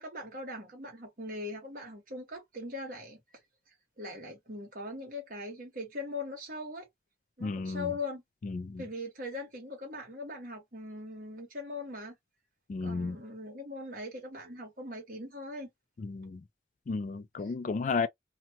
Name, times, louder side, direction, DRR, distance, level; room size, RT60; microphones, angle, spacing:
voice 1, 0.0-3.2 3.7-6.9 7.4-8.2 8.8-12.1 12.8-15.7, left 2 dB, 50° right, 1.5 m, -40 dB
voice 2, 7.4-7.9 8.4-8.8 12.7-13.2 16.0-16.4 16.9-18.1, left 4 dB, 45° left, 0.3 m, -33 dB
2.8 x 2.3 x 2.9 m
head